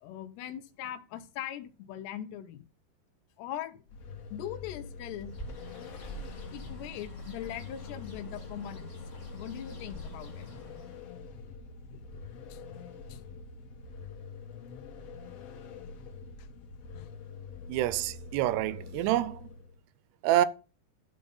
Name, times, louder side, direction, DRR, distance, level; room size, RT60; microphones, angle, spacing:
voice 1, 0.0-2.6 3.4-3.8 4.3-5.4 6.5-9.0 9.3-10.5 11.9-12.0 12.5-13.2 16.4-16.5 16.9-17.1, left 11 dB, 90° left, 3.1 m, -41 dB
Vehicle, 3.9-19.8, left 4 dB, 55° left, 1.9 m, -45 dB
Bird, 5.2-11.1, left 1 dB, 40° left, 1.0 m, -46 dB
voice 2, 17.7-19.5 20.2-20.5, right 13 dB, 85° right, 2.8 m, -27 dB
13.0 x 5.3 x 5.4 m
omnidirectional pair, 4.7 m